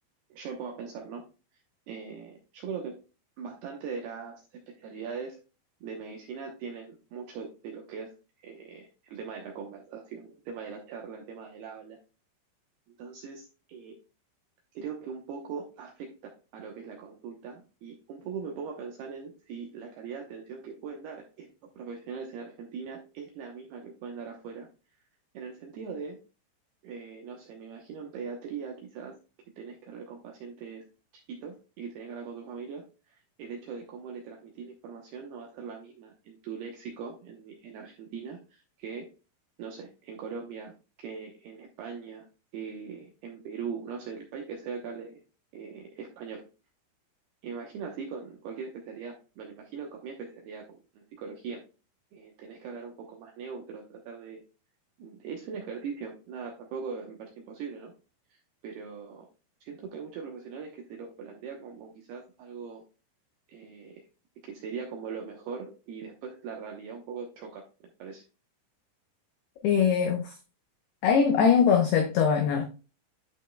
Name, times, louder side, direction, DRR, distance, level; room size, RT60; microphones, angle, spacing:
voice 1, 0.3-1.3 1.9-3.1 3.4-5.4 5.8-12.0 13.0-14.0 14.7-21.5 21.8-24.7 25.3-26.2 26.8-29.2 29.6-30.9 31.3-39.1 39.6-40.7 41.0-42.3 42.5-45.2 45.5-46.5 47.4-51.6 52.1-54.4 55.0-57.9 58.3-59.3 59.6-62.8 63.5-64.0 64.5-67.7 68.0-68.2, right 6 dB, 80° right, 2.3 m, -40 dB
voice 2, 69.6-70.3 71.0-72.6, left 7 dB, 85° left, 2.3 m, -22 dB
11.5 x 5.3 x 2.2 m
omnidirectional pair, 5.9 m